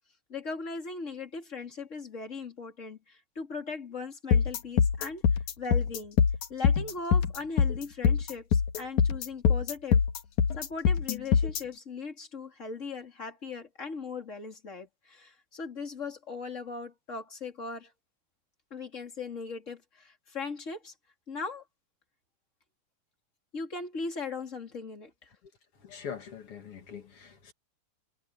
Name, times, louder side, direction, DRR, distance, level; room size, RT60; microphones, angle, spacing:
voice 1, 0.3-6.2 6.5-10.0 10.5-17.9 18.7-20.9 21.3-21.6 23.5-25.3, left 4 dB, 20° left, 3.0 m, -39 dB
sound 1, 4.3-11.6, left 6 dB, 65° left, 3.0 m, -23 dB
voice 2, 25.8-27.5, left 7 dB, 45° left, 2.5 m, -42 dB
omnidirectional pair, 3.9 m